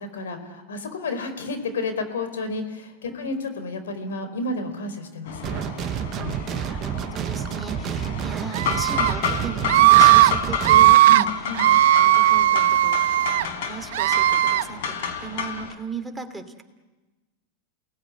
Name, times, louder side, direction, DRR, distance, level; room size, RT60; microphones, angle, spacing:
voice 1, 0.0-5.6 6.2-6.5 7.8-7.9 9.8-9.9 11.1-11.6, left 2 dB, 90° left, 8 dB, 4.7 m, -31 dB
sound 1, 5.3-15.7, left 6 dB, 70° left, 4.2 m, -31 dB
sound 2, 5.4-11.0, right 10 dB, 35° right, 0.9 m, -30 dB
voice 2, 6.1-11.3 11.6-16.6, right 4 dB, 5° right, 4 dB, 2.7 m, -37 dB
Screaming, 8.5-9.1 9.7-10.3 10.6-11.2 11.6-13.4 13.9-14.6, right 14 dB, 75° right, 0.9 m, -16 dB
29.0 x 19.5 x 9.8 m, 1.2 s
hypercardioid pair, 120°, 0 cm